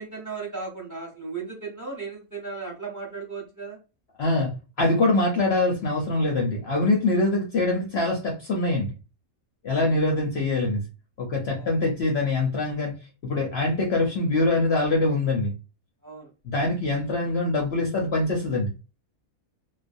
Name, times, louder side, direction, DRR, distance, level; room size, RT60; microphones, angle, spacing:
voice 1, 0.0-3.8 9.7-10.0 11.6-11.7 16.0-16.3, right 4 dB, 15° right, -2 dB, 0.9 m, -36 dB
voice 2, 4.2-4.5 4.8-8.9 9.6-10.8 11.2-13.0 13.2-15.5 16.4-18.7, left 2 dB, 55° left, -1 dB, 0.8 m, -24 dB
2.4 x 2.1 x 2.5 m, 0.31 s
omnidirectional pair, 1.5 m